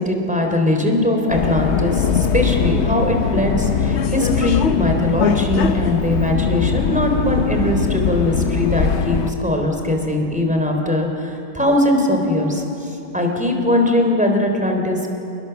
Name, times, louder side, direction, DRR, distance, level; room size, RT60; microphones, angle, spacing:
voice 1, 0.0-12.6 13.1-15.1, left 1 dB, 5° right, 2 dB, 3.4 m, -20 dB
Subway metro underground, 1.3-9.3, left 6 dB, 60° left, 1.2 m, -20 dB
29.0 x 20.5 x 6.9 m, 2.8 s
omnidirectional pair, 1.3 m